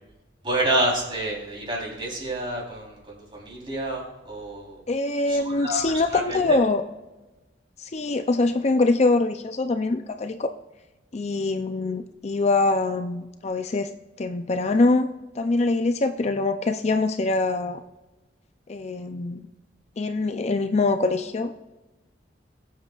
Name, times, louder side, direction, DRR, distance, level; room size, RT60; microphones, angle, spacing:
voice 1, 0.4-4.8 5.3-6.6, right 1 dB, 30° right, -3 dB, 3.6 m, -28 dB
voice 2, 4.9-6.8 7.8-10.5 11.1-13.9 14.2-15.1 15.4-17.8 18.7-19.4 20.0-21.5, left 3 dB, 35° left, 8 dB, 0.5 m, -23 dB
21.0 x 7.5 x 2.4 m, 1.1 s
head